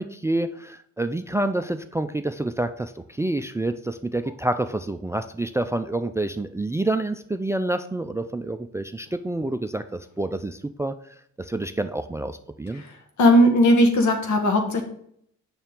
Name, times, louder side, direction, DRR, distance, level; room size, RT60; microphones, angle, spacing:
voice 1, 0.0-10.9 11.4-12.8, right 2 dB, 10° right, 10 dB, 0.3 m, -28 dB
voice 2, 13.2-14.8, equal, 70° left, 4 dB, 1.7 m, -18 dB
7.0 x 5.9 x 3.7 m, 0.68 s
cardioid pair, 90°, 30 cm